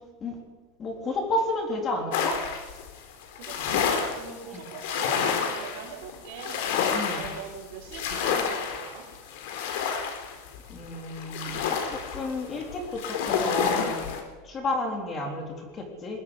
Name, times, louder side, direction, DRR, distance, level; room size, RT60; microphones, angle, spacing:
voice 1, 0.8-2.4 4.5-4.6 6.9-7.2 10.7-14.1 14.4-16.2, left 2 dB, 20° left, 3 dB, 3.7 m, -31 dB
sound 1, 2.1-14.2, left 6 dB, 60° left, 3.9 m, -29 dB
voice 2, 3.4-6.7 7.1-9.1, right 7 dB, 60° right, 1 dB, 4.7 m, -42 dB
21.5 x 13.0 x 10.0 m, 1.3 s
supercardioid pair, 175°, 0 cm